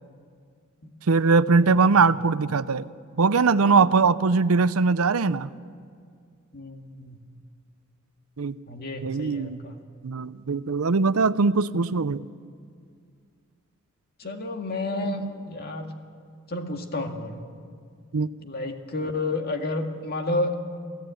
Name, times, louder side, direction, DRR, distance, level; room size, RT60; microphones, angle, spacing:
voice 1, 1.1-2.9 3.2-5.5 8.4-8.5 9.0-9.6 10.0-12.2 15.0-15.3 18.1-18.3, right 4 dB, 80° right, 15 dB, 0.6 m, -21 dB
voice 2, 6.5-7.2 8.7-9.8 14.2-15.9 16.5-17.4 18.4-20.6, left 2 dB, 45° left, 4 dB, 2.1 m, -31 dB
28.5 x 16.0 x 9.2 m, 2.2 s
head